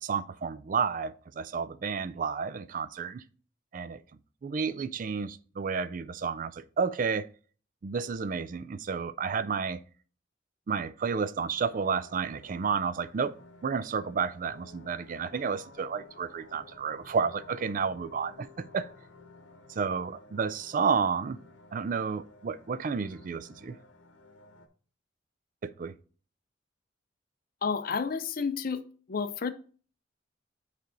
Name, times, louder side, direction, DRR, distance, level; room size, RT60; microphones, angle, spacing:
voice 1, 0.0-3.2 3.7-4.0 4.4-7.3 7.8-9.8 10.7-13.3 13.6-18.9 19.7-21.4 21.7-23.8 25.6-25.9, right 5 dB, 45° right, 0.4 m, -31 dB
sound 1, 11.5-24.7, left 3 dB, 85° left, 0.9 m, -54 dB
voice 2, 27.6-29.5, left 5 dB, 50° left, 0.5 m, -31 dB
9.2 x 3.3 x 3.8 m
head